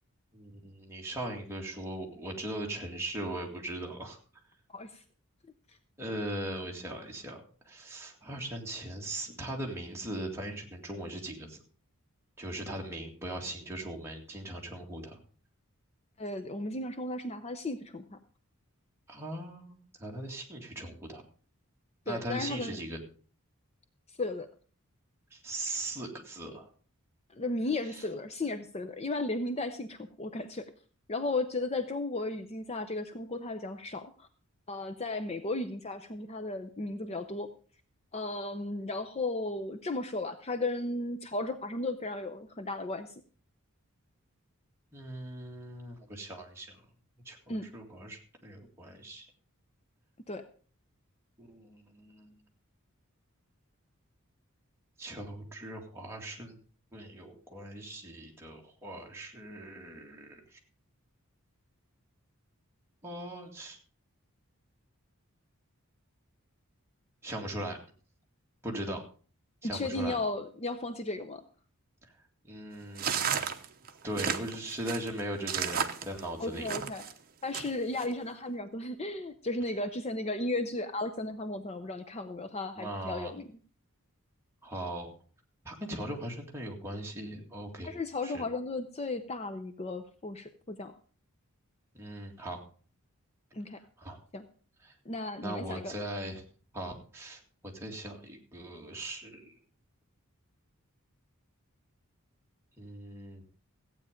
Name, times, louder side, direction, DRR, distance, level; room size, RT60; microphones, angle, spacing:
voice 1, 0.3-4.2 6.0-11.6 12.4-15.2 19.1-21.2 22.1-23.0 25.3-26.7 27.9-28.0 44.9-46.8 47.3-49.3 51.4-52.3 55.0-56.6 56.9-60.6 63.0-63.8 67.2-67.8 68.6-69.0 69.6-70.2 72.0-72.1 72.4-73.6 74.0-76.7 82.8-83.3 84.6-85.1 85.6-87.9 88.2-88.4 91.9-92.6 94.0-94.2 94.8-94.9 95.4-96.4 96.7-99.6 102.8-103.5, right 1 dB, 10° right, -1 dB, 2.1 m, -39 dB
voice 2, 4.7-5.0 16.2-18.2 22.1-22.8 24.1-24.5 27.3-30.7 31.1-34.3 34.7-37.5 38.1-43.1 47.5-47.6 50.3-50.4 69.6-71.4 76.4-77.0 77.4-83.5 87.8-90.9 93.5-93.8 94.3-94.4 95.1-95.9, left 2 dB, 30° left, 9 dB, 0.6 m, -35 dB
sound 1, 73.0-77.1 77.5-78.1, right 7 dB, 40° right, 0.9 m, -33 dB
15.0 x 8.8 x 5.1 m, 0.41 s
head